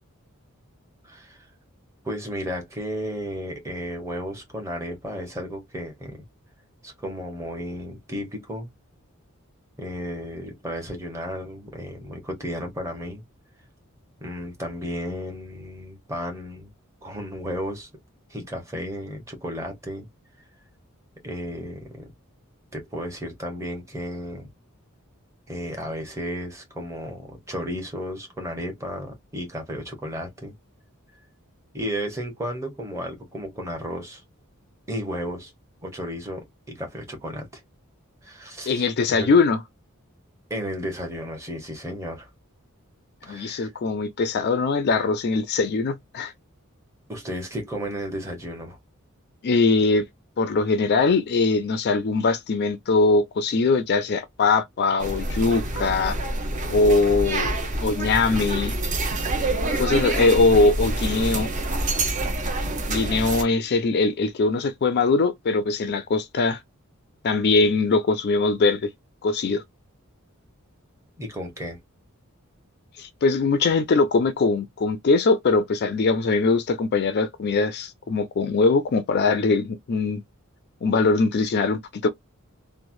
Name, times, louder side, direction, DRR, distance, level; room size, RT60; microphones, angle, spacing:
voice 1, 1.0-1.4 2.0-6.2 6.8-8.7 9.8-13.2 14.2-16.7 17.0-17.9 18.3-20.1 21.2-22.1 22.7-24.5 25.5-30.5 31.7-34.2 34.9-35.5 35.8-37.6 38.2-39.3 40.5-42.3 43.2-43.7 47.1-48.8 71.2-71.8, equal, 15° right, 1.0 m, -33 dB
voice 2, 38.7-39.6 43.3-46.3 49.4-50.1 50.4-56.2 56.7-58.7 59.8-61.5 62.8-66.6 67.2-68.9 69.2-69.6 73.0-80.2 80.8-82.1, left 3 dB, 50° left, 0.4 m, -21 dB
sound 1, 55.0-63.4, right 2 dB, 35° right, 0.7 m, -27 dB
3.1 x 2.1 x 2.5 m
head